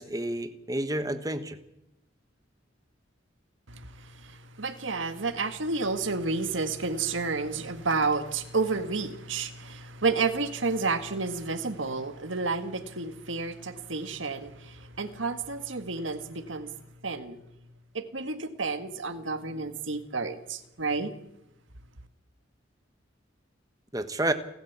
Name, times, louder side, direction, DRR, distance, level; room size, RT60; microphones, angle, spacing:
voice 1, 0.0-1.6 23.9-24.3, right 1 dB, 20° right, 10 dB, 1.3 m, -30 dB
voice 2, 3.7-16.7 17.0-17.4 17.9-21.1, right 4 dB, 80° right, 9 dB, 1.8 m, -31 dB
29.0 x 11.5 x 8.3 m, 0.87 s
head